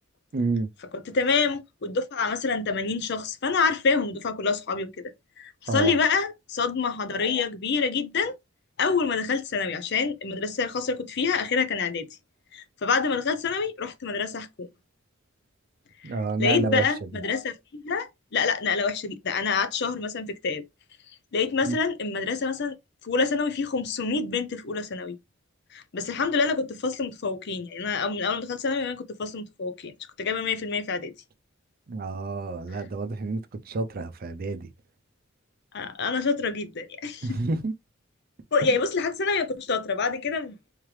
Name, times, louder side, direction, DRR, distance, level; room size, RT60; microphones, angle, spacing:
voice 1, 0.3-0.7 5.7-6.0 16.0-16.9 21.6-21.7 31.9-33.4 33.7-34.7 37.2-37.7, right 3 dB, 50° right, 0.5 m, -28 dB
voice 2, 0.9-4.9 5.4-8.4 8.8-12.1 12.5-14.7 16.0-16.1 16.4-20.6 21.3-22.7 23.0-25.2 25.7-29.9 30.2-31.1 35.7-37.4 38.5-40.5, left 4 dB, 55° left, 0.6 m, -27 dB
3.6 x 3.2 x 3.1 m
head